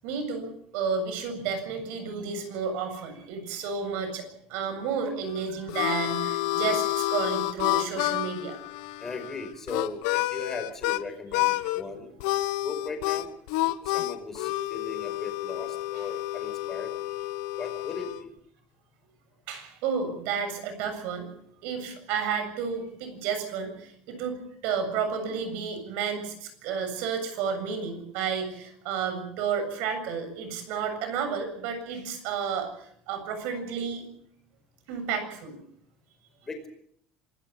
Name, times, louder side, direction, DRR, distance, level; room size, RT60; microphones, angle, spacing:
voice 1, 0.0-8.6 19.5-21.3 21.6-34.1 34.9-35.6, right 6 dB, 65° right, 9 dB, 7.4 m, -31 dB
Harmonica, 5.2-11.0 11.3-11.8 12.2-18.2, left 17 dB, 85° left, 1.3 m, -29 dB
voice 2, 9.0-12.1 12.6-13.3 13.8-16.9 17.6-18.3 36.4-36.7, left 3 dB, 15° left, 6 dB, 5.1 m, -38 dB
27.0 x 19.0 x 7.1 m, 0.68 s
cardioid pair, 175°, 3 cm